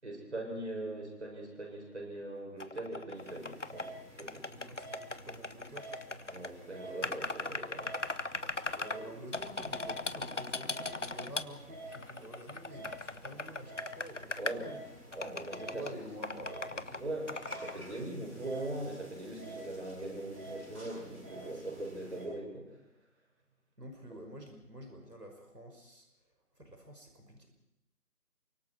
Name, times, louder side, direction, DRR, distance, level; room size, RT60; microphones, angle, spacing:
voice 1, 0.0-4.6 6.3-7.9 8.9-9.1 14.4-15.9 16.7-22.8, right 1 dB, 45° right, 1 dB, 7.5 m, -41 dB
sound 1, 2.6-3.9 4.2-6.5 7.0-9.0 9.3-11.4 11.9-14.5 15.1-15.9 16.2-17.0 17.3-17.8, left 3 dB, 50° left, 0.9 m, -38 dB
sound 2, 3.1-22.2, right 1 dB, 10° right, 5.6 m, -50 dB
voice 2, 4.5-6.3 8.7-14.4 14.6-14.8 15.5-17.1 21.4-21.6 23.8-26.1 26.6-27.5, right 1 dB, 85° right, 3 dB, 5.8 m, -49 dB
28.5 x 24.5 x 4.7 m, 0.87 s
figure-of-eight pair, 165°, 47 cm